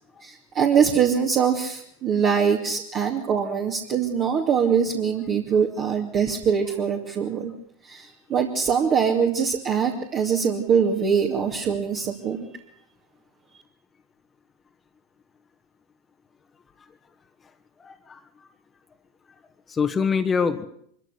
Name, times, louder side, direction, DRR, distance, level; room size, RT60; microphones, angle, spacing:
voice 1, 0.2-7.5 7.8-12.5, right 7 dB, 40° right, 1 dB, 2.4 m, -23 dB
voice 2, 17.8-18.5 19.7-20.7, left 5 dB, 20° left, 8 dB, 1.5 m, -25 dB
23.5 x 14.5 x 8.1 m, 0.68 s
hypercardioid pair, 100°, 0 cm